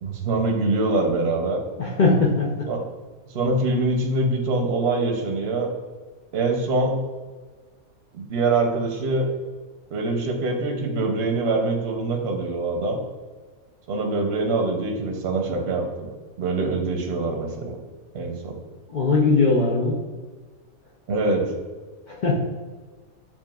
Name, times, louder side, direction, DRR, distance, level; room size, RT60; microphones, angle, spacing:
voice 1, 0.0-1.6 2.7-2.8 3.3-5.7 6.3-7.0 8.1-9.3 9.9-13.0 13.9-16.1 16.4-17.8 18.1-18.5 21.1-21.5, right 2 dB, 55° right, 2 dB, 0.7 m, -24 dB
voice 2, 1.8-2.7 18.9-20.0 22.1-22.3, left 3 dB, 70° left, -3 dB, 0.4 m, -20 dB
7.1 x 2.5 x 2.3 m, 1.4 s
omnidirectional pair, 1.6 m